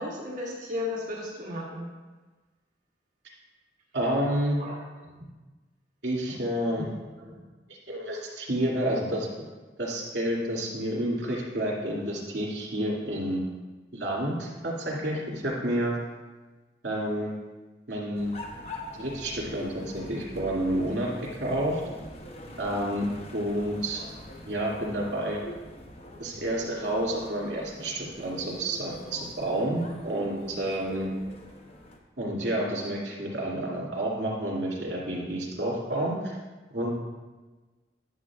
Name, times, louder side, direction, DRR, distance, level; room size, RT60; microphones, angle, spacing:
voice 1, 0.0-1.8 4.6-4.8 6.8-6.9 7.2-7.5, left 2 dB, 45° right, -4 dB, 1.2 m, -34 dB
voice 2, 3.9-4.6 6.0-6.9 7.9-9.3 9.8-13.4 13.9-16.0 16.8-17.3 17.9-18.3 19.0-21.1 21.4-21.8 22.6-23.1 23.3-24.0 24.4-25.4 26.2-31.1 32.2-36.2 36.7-36.9, right 1 dB, 70° right, -4 dB, 2.4 m, -29 dB
sound 1, 18.1-32.0, left 1 dB, 35° left, 0.8 m, -44 dB
11.0 x 7.1 x 2.4 m, 1.3 s
head